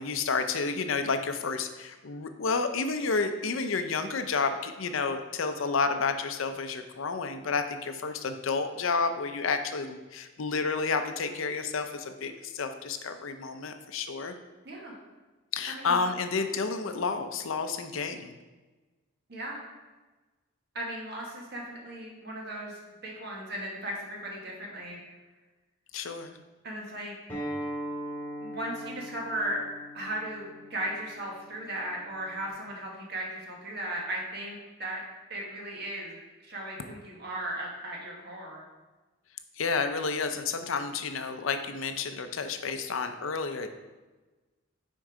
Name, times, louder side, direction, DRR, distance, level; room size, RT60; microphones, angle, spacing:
voice 1, 0.0-14.3 15.5-18.3 25.9-26.4 39.6-43.7, left 4 dB, 70° left, 8 dB, 0.6 m, -30 dB
voice 2, 15.7-16.0 19.3-19.6 20.7-25.0 26.6-27.1 28.4-29.6 29.9-35.0 35.3-38.6, right 1 dB, 50° right, -2 dB, 1.6 m, -36 dB
Acoustic guitar, 27.3-32.5, equal, 10° left, 1.9 m, -40 dB
6.3 x 4.5 x 4.9 m, 1.2 s
head